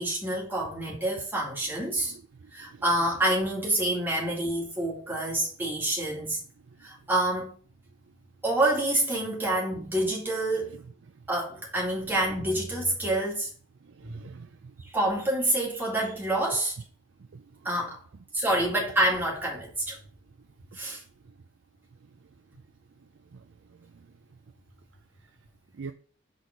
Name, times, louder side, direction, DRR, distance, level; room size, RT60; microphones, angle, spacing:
voice 1, 0.0-2.1 2.5-6.4 6.8-7.6 8.4-10.7 11.3-13.5 14.0-14.2 14.8-16.7 17.6-18.0 18.3-20.0 20.7-21.0, right 1 dB, 10° right, 2.1 m, -27 dB
voice 2, 1.9-2.8 13.8-14.7 17.3-17.4 23.3-23.4 25.7-25.9, right 5 dB, 70° right, 0.4 m, -45 dB
6.3 x 4.1 x 5.0 m
head